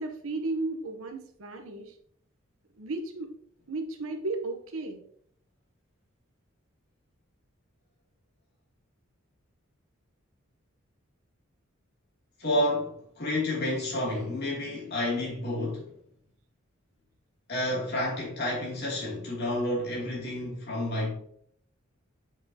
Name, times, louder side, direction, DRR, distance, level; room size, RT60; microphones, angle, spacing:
voice 1, 0.0-2.0 2.7-3.3 3.7-5.0, right 2 dB, 90° right, 0.9 m, -34 dB
voice 2, 12.4-15.9 17.5-21.1, left 1 dB, 50° left, 2.7 m, -30 dB
6.8 x 6.0 x 2.8 m
head